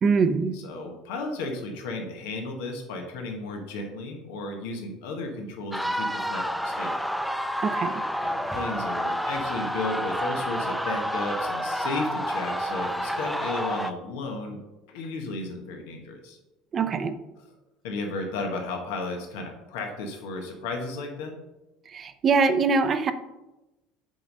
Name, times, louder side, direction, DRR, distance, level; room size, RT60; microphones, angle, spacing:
voice 1, 0.0-0.5 7.6-8.0 16.7-17.1 21.9-23.1, right 4 dB, 40° right, 11 dB, 0.6 m, -23 dB
voice 2, 0.5-6.9 8.2-14.6 14.9-16.4 17.8-21.4, left 2 dB, 85° left, 3 dB, 1.2 m, -34 dB
sound 1, 5.7-13.9, equal, ahead, 0.5 m, -29 dB
7.6 x 3.8 x 5.3 m, 1.0 s
supercardioid pair, 100°, 0 cm